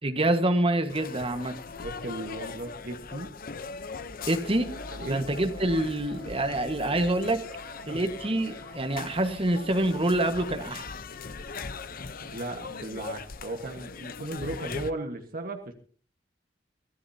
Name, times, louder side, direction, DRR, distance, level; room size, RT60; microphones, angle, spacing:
voice 1, 0.0-1.6 4.3-4.7 5.1-7.4 7.9-10.8, right 1 dB, 30° right, 7 dB, 1.5 m, -26 dB
sound 1, 0.9-14.9, left 4 dB, 50° left, 0.9 m, -40 dB
voice 2, 1.8-3.3 4.9-5.3 7.9-8.0 12.2-15.7, right 2 dB, 50° right, 4 dB, 1.5 m, -36 dB
Wind instrument woodwind instrument, 4.3-9.4, right 4 dB, 15° left, 1.8 m, -50 dB
24.0 x 15.0 x 2.8 m, 0.43 s
head